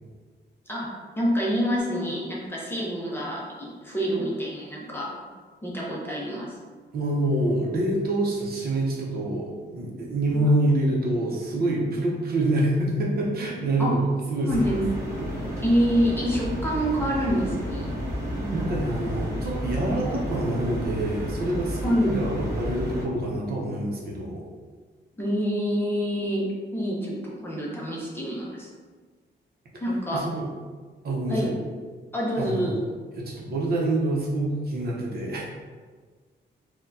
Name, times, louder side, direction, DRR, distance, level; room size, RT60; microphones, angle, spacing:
voice 1, 0.7-5.1 5.6-6.6 10.3-10.5 13.8-14.0 14.4-14.9 15.6-17.9 18.3-18.6 21.8-22.1 25.2-28.7 29.8-30.2 31.3-31.5 32.1-32.8, equal, 10° left, -5 dB, 0.6 m, -27 dB
voice 2, 6.9-14.8 18.5-24.4 30.1-30.5 31.0-31.5 32.4-32.7 33.2-35.4, right 1 dB, 55° right, -3 dB, 0.7 m, -26 dB
sound 1, 14.5-23.0, equal, 15° right, 1.0 m, -32 dB
4.3 x 2.2 x 2.6 m, 1.5 s
wide cardioid pair, 160°, 19 cm